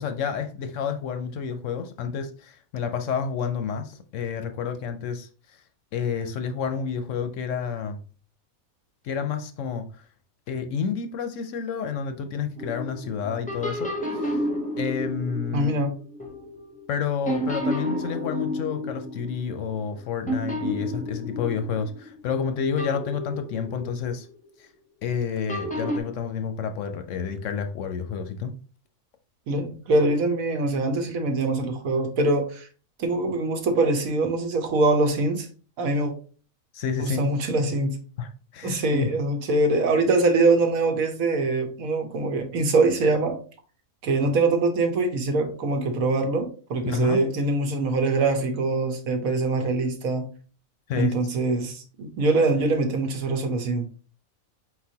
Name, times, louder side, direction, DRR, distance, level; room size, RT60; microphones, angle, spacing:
voice 1, 0.0-5.3 5.9-8.0 9.0-10.0 10.5-14.4 14.8-15.7 16.9-24.3 24.6-24.7 25.0-28.5 36.7-37.2 38.2-39.1 46.9-47.2 50.9-51.2, left 6 dB, 70° left, 0.9 m, -29 dB
sound 1, 12.6-16.9 17.3-20.0 20.3-22.3 22.8-24.3 25.5-26.0, equal, 10° left, 0.5 m, -31 dB
voice 2, 15.5-15.9 29.5-32.7 33.0-35.5 35.8-36.1 37.0-38.0 38.6-43.4 44.0-50.3 51.0-53.8, right 2 dB, 80° right, 1.3 m, -23 dB
4.4 x 4.0 x 2.8 m
omnidirectional pair, 1.5 m